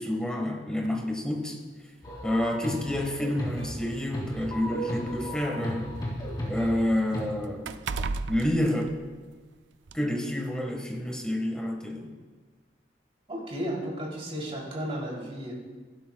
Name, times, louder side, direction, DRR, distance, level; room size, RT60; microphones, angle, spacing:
voice 1, 0.0-1.6 2.2-5.9 6.5-7.7 8.3-8.9 9.9-12.1, left 1 dB, 5° left, 1 dB, 1.5 m, -29 dB
sound 1, 0.8-1.0 2.1-2.2 2.6-2.7 3.7-5.7 6.0-9.5 9.9-10.0, right 4 dB, 80° right, 0.4 m, -37 dB
sound 2, 2.0-7.3, equal, 25° left, 2.5 m, -35 dB
voice 2, 13.3-15.5, equal, 35° right, -3 dB, 3.2 m, -34 dB
15.5 x 12.0 x 2.3 m, 1.4 s
head